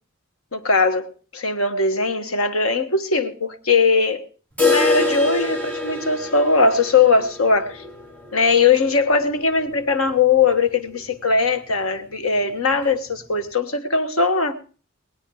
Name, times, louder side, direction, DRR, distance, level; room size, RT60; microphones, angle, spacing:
voice 1, 0.5-4.3 4.6-7.8 8.3-14.6, left 4 dB, 85° left, 1.5 m, -20 dB
sound 1, 4.6-10.4 10.7-10.8 11.1-11.2 11.7-11.8 12.7-12.8, left 3 dB, 10° left, 3.6 m, -26 dB
21.0 x 9.0 x 4.8 m
head